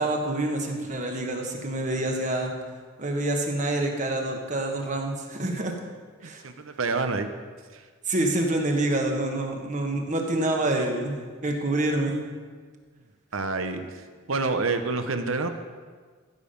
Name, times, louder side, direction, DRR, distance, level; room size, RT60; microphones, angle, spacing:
voice 1, 0.0-2.5 3.0-5.7 6.2-6.4 8.1-12.2, right 2 dB, 35° right, 2 dB, 1.4 m, -27 dB
voice 2, 6.2-7.3 7.7-7.8 13.3-14.0 14.3-15.5, right 3 dB, 75° right, 8 dB, 0.9 m, -28 dB
14.5 x 7.3 x 5.3 m, 1.5 s
head